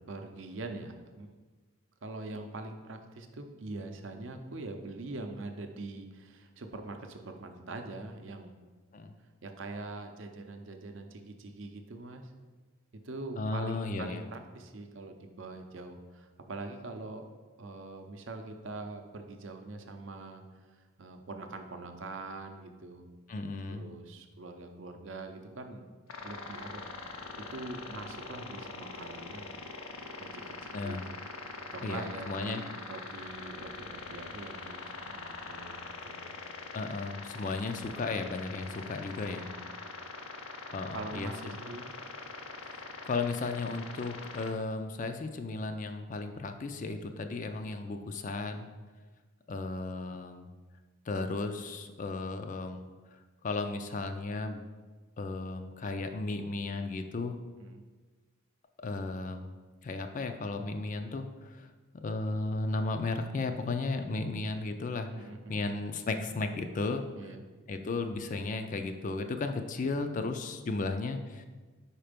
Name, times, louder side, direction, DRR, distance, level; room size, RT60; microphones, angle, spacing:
voice 1, 0.0-1.3 2.0-8.5 9.4-12.3 13.0-17.3 17.6-23.1 23.7-25.8 26.2-27.0 27.4-29.5 30.2-31.0 31.7-35.7 36.0-36.3 39.2-39.6 40.9-41.9 57.6-57.9 65.1-65.7 67.1-67.4, right 2 dB, 60° right, 5 dB, 0.6 m, -43 dB
voice 2, 13.4-14.2 23.3-23.9 30.7-31.1 31.8-32.6 36.7-39.5 40.7-41.3 42.7-48.7 49.5-50.5 51.1-52.8 53.4-54.7 55.2-57.4 58.8-59.5 59.8-61.7 62.0-67.0 67.7-71.5, left 3 dB, 35° left, 7 dB, 0.4 m, -35 dB
sound 1, 26.1-44.5, left 3 dB, 85° left, 0.7 m, -43 dB
5.0 x 4.4 x 5.1 m, 1.3 s
head